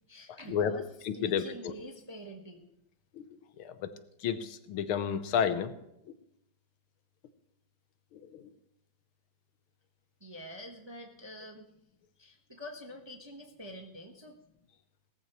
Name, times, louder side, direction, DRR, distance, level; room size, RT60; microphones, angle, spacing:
voice 1, 0.1-0.9 1.1-2.6 10.2-11.7 12.2-14.4, equal, 20° right, 2 dB, 0.8 m, -46 dB
voice 2, 1.1-1.7 3.1-3.3 3.6-3.9 4.2-5.7 8.1-8.5, left 8 dB, 85° left, 11 dB, 1.7 m, -31 dB
18.0 x 14.0 x 3.1 m, 0.81 s
omnidirectional pair, 2.3 m